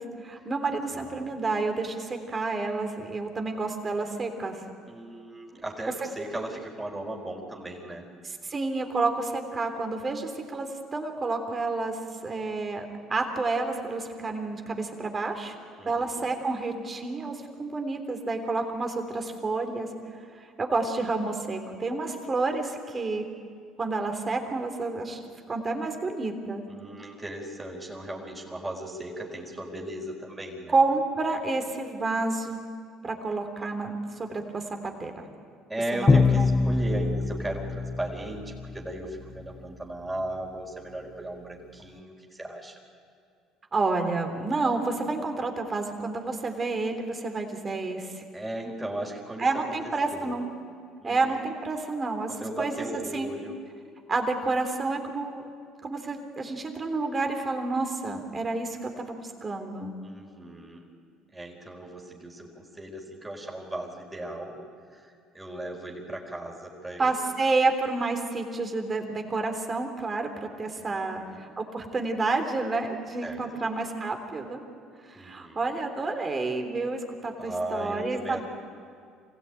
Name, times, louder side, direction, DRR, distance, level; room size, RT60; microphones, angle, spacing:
voice 1, 0.0-4.6 8.4-12.9 13.1-15.6 15.9-19.9 20.4-23.2 23.8-25.2 25.5-26.6 30.7-32.7 33.0-35.1 35.9-36.5 43.7-48.2 49.4-50.5 51.0-52.9 53.1-53.3 54.1-55.5 55.8-59.9 67.0-74.6 75.1-78.4, right 3 dB, 30° right, 5 dB, 3.5 m, -29 dB
voice 2, 0.9-1.3 4.9-8.1 15.8-16.3 26.7-30.8 35.7-42.8 48.3-50.4 51.0-51.4 52.3-53.6 60.0-60.9 61.3-64.6 64.9-67.1 70.8-71.4 73.2-73.7 75.1-75.6 77.4-78.4, right 1 dB, 15° right, -1 dB, 4.4 m, -37 dB
Bowed string instrument, 36.1-38.9, left 4 dB, 25° left, 0.7 m, -24 dB
25.0 x 16.5 x 9.1 m, 2.3 s
supercardioid pair, 75°, 0 cm